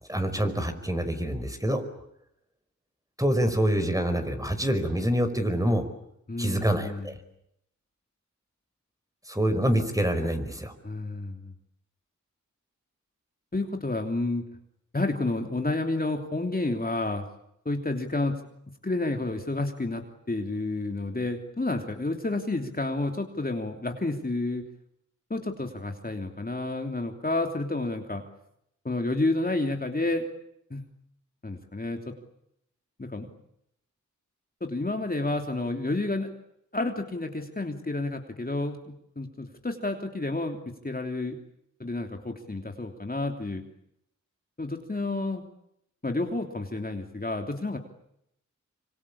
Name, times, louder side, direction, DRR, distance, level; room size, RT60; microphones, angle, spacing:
voice 1, 0.1-1.8 3.2-5.8 6.4-7.2 9.3-10.7, equal, 10° right, 8 dB, 5.3 m, -26 dB
voice 2, 6.3-7.1 10.8-11.5 13.5-14.4 14.9-17.2 17.6-18.4 18.8-24.6 25.3-28.2 28.8-30.3 30.7-30.8 31.4-32.2 33.0-33.3 34.6-36.3 36.7-41.4 41.8-43.6 44.6-45.4 46.0-47.8, left 2 dB, 30° left, 4 dB, 3.1 m, -30 dB
25.5 x 25.0 x 8.6 m, 0.77 s
cardioid pair, 50°, 30 cm